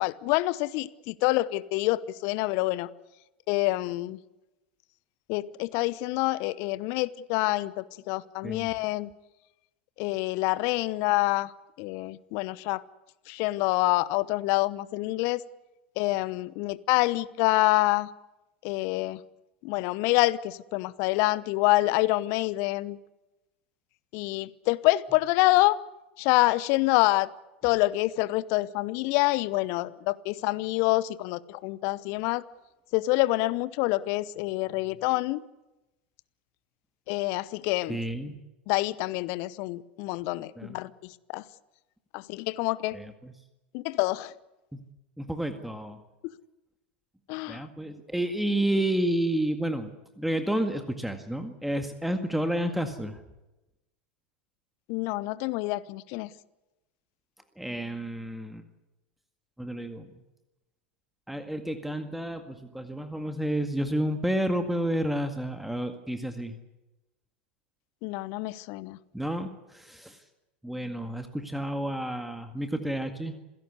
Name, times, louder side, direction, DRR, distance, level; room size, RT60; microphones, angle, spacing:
voice 1, 0.0-2.9 3.5-4.2 5.3-9.1 10.0-11.5 11.8-12.8 13.3-15.4 16.0-18.1 18.6-19.2 19.6-23.0 24.1-25.8 26.2-27.3 27.6-32.4 32.9-35.4 37.1-38.0 38.7-41.5 42.1-43.0 43.7-44.3 46.2-46.3 47.3-47.7 54.9-56.3 68.0-69.0, left 19 dB, 50° left, 19 dB, 0.9 m, -27 dB
voice 2, 37.9-38.3 40.6-40.8 42.9-43.3 45.2-46.0 47.5-53.2 57.6-58.6 59.6-60.1 61.3-66.6 69.1-70.2 70.6-73.4, right 1 dB, ahead, 7 dB, 1.9 m, -30 dB
27.5 x 17.0 x 8.3 m, 1.0 s
figure-of-eight pair, 80°, 6 cm